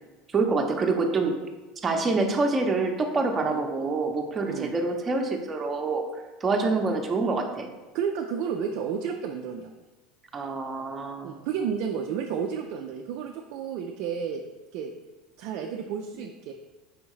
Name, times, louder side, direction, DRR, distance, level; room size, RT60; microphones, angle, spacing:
voice 1, 0.3-1.4 1.8-6.0 6.4-7.7 10.3-11.4, right 3 dB, 25° right, 3 dB, 0.7 m, -26 dB
voice 2, 7.9-9.7 11.2-14.4 14.7-14.9 15.4-16.5, right 7 dB, 65° right, 3 dB, 0.3 m, -31 dB
4.9 x 3.5 x 3.0 m, 1.1 s
hypercardioid pair, 90°, 0 cm